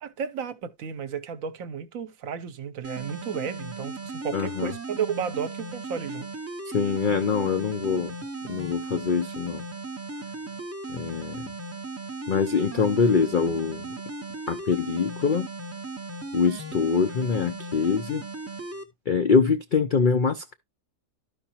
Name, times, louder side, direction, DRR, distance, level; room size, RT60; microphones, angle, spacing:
voice 1, 0.0-6.3, right 7 dB, 65° right, 1.1 m, -33 dB
sound 1, 2.8-18.8, right 3 dB, 20° right, 0.3 m, -37 dB
voice 2, 4.3-4.7 6.7-8.1 8.4-9.6 10.9-11.5 12.3-13.9 14.5-15.5 16.3-18.2 19.1-20.5, left 5 dB, 80° left, 0.4 m, -24 dB
12.5 x 5.1 x 2.8 m
omnidirectional pair, 1.7 m